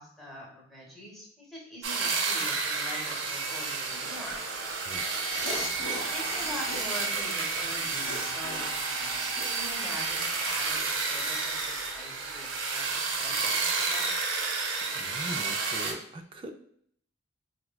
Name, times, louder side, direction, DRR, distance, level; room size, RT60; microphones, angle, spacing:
voice 1, 0.0-4.4 5.4-5.7 6.1-14.0, left 1 dB, ahead, -4 dB, 1.0 m, -44 dB
Electric Hedge Trimmer, 1.8-15.9, right 4 dB, 75° right, 0.6 m, -31 dB
sound 1, 5.3-11.3, left 2 dB, 75° left, 0.8 m, -42 dB
voice 2, 14.9-16.5, right 1 dB, 25° right, 5 dB, 0.3 m, -40 dB
4.5 x 2.2 x 2.2 m, 0.64 s
head